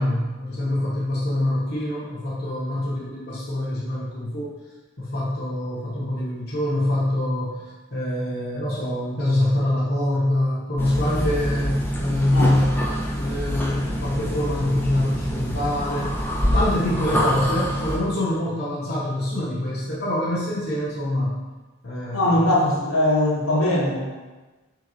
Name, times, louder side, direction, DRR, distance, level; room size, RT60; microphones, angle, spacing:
voice 1, 0.0-4.5 5.0-7.6 7.9-12.8 13.2-16.1 16.5-21.3 21.8-22.5, left 1 dB, 50° left, -7 dB, 0.9 m, -25 dB
sound 1, 10.8-18.0, equal, 10° left, 0.4 m, -26 dB
voice 2, 22.1-24.1, left 1 dB, 85° left, -6 dB, 1.2 m, -20 dB
3.8 x 2.9 x 3.8 m, 1.2 s
head